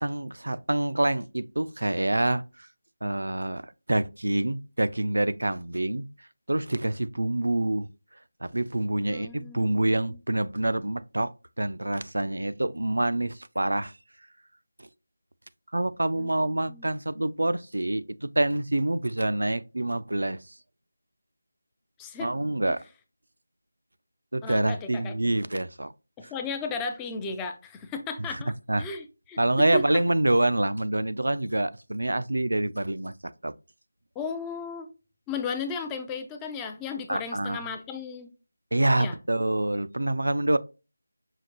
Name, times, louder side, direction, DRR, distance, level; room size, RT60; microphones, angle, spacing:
voice 1, 0.0-2.7 3.0-6.1 6.5-7.9 8.4-13.9 14.8-14.9 15.7-20.6 22.2-22.8 24.3-25.9 26.2-26.3 28.3-28.4 28.7-28.9 29.4-33.5 37.1-37.7 38.7-40.6, right 1 dB, 75° right, 0.3 m, -26 dB
voice 2, 9.0-10.2 16.1-16.9 22.0-22.3 24.4-25.3 26.2-28.5 28.8-30.0 34.2-34.9 35.3-38.3 39.0-39.2, left 5 dB, 10° left, 0.4 m, -35 dB
5.7 x 2.4 x 2.8 m
figure-of-eight pair, 165°, 0 cm